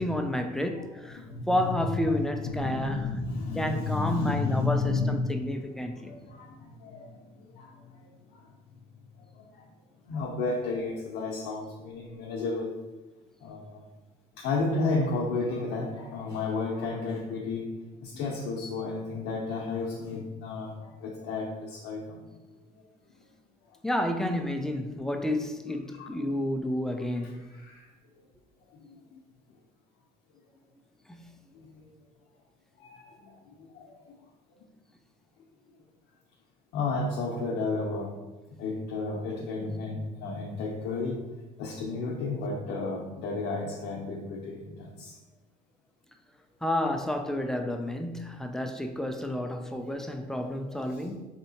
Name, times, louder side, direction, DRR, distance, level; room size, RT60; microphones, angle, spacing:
voice 1, 0.0-3.1 3.6-6.1 23.8-27.5 31.1-31.3 46.6-51.2, left 1 dB, 5° left, 0.3 m, -30 dB
voice 2, 1.2-2.3 2.6-7.2 7.5-8.4 9.4-9.6 10.1-12.7 13.4-13.8 14.4-17.7 18.0-22.2 25.1-25.2 26.0-26.1 27.1-27.9 28.8-29.2 31.5-31.7 32.8-33.3 33.7-34.0 36.7-38.1 38.6-41.2 41.6-45.1 50.8-51.0, left 3 dB, 85° left, 0.6 m, -32 dB
4.2 x 2.7 x 2.7 m
cardioid pair, 110°, 17 cm